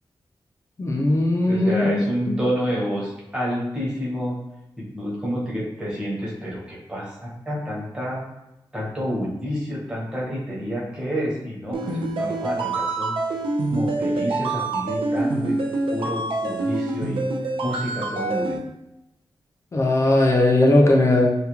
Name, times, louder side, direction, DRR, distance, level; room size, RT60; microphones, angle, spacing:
voice 1, 0.8-2.4 19.7-21.3, left 2 dB, 35° left, 0 dB, 0.3 m, -18 dB
voice 2, 1.5-4.3 4.8-8.2 8.7-13.2 13.7-15.6 15.9-17.3 17.6-18.6, equal, 10° right, -6 dB, 0.8 m, -29 dB
sound 1, 11.7-18.6, right 2 dB, 90° right, 0.4 m, -26 dB
2.3 x 2.2 x 2.9 m, 0.89 s
wide cardioid pair, 125°, 9 cm